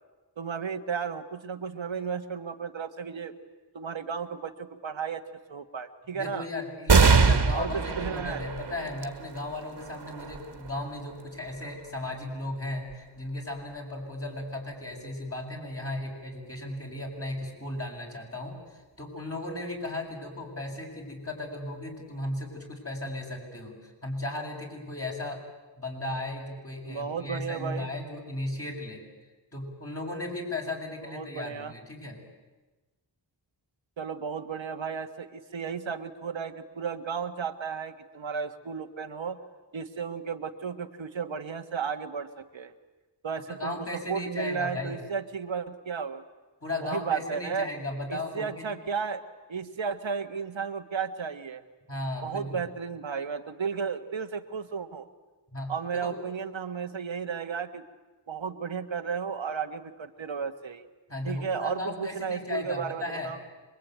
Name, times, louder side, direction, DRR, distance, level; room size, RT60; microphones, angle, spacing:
voice 1, 0.4-3.3 3.7-5.2 5.5-6.5 7.5-8.4 26.9-27.9 31.1-31.7 34.0-39.4 39.7-42.7 43.2-46.2 46.8-47.7 48.1-49.2 49.5-51.6 52.2-55.1 55.7-57.8 58.3-60.8 61.2-63.4, right 6 dB, 85° right, 7 dB, 1.5 m, -34 dB
voice 2, 6.1-25.4 25.8-29.0 29.5-32.2 43.5-45.0 46.6-48.7 51.9-52.6 55.5-56.2 61.1-63.3, left 2 dB, 30° left, 0 dB, 7.3 m, -36 dB
sound 1, 6.9-13.8 14.4-14.5 15.6-16.2, right 4 dB, 65° right, 2.0 m, -26 dB
26.0 x 22.5 x 9.3 m, 1.2 s
wide cardioid pair, 65°, 45 cm